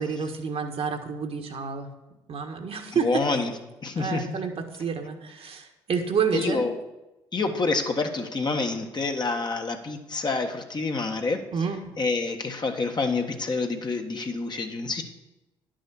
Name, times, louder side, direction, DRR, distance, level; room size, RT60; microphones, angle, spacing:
voice 1, 0.0-1.9 2.3-3.2 3.9-6.7 11.5-11.8, right 6 dB, 55° right, 4 dB, 1.5 m, -29 dB
voice 2, 3.0-3.5 3.8-4.4 6.3-6.8 7.3-11.4 12.0-15.0, left 3 dB, 35° left, 4 dB, 1.4 m, -27 dB
10.5 x 6.3 x 6.3 m, 0.99 s
hypercardioid pair, 55°, 12 cm